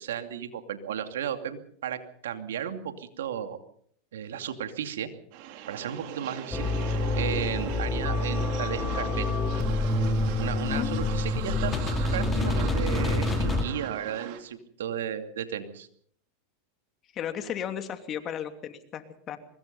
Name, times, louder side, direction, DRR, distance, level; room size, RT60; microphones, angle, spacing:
voice 1, 0.0-3.6 4.1-5.1 5.7-6.7 7.2-9.3 10.4-11.7 12.1-15.9, right 9 dB, 85° right, 8 dB, 2.6 m, -34 dB
sound 1, 5.3-14.4, right 10 dB, 60° right, 3.8 m, -39 dB
sound 2, 6.5-13.6, left 2 dB, 20° left, 2.8 m, -27 dB
voice 2, 10.7-11.0 17.1-19.4, left 9 dB, 35° left, 8 dB, 2.8 m, -35 dB
24.0 x 20.5 x 5.5 m, 0.62 s
hypercardioid pair, 110°, 0 cm